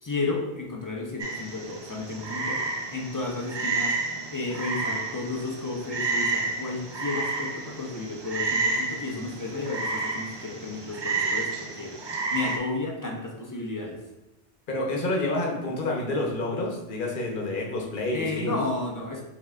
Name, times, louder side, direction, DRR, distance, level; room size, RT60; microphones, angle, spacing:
voice 1, 0.0-14.0 18.1-19.2, left 3 dB, 30° left, -1 dB, 0.4 m, -33 dB
Frog, 1.2-12.6, right 3 dB, 45° right, 0.3 m, -31 dB
voice 2, 14.7-18.6, left 2 dB, 55° left, -1 dB, 1.0 m, -28 dB
5.3 x 3.6 x 2.4 m, 0.98 s
omnidirectional pair, 1.1 m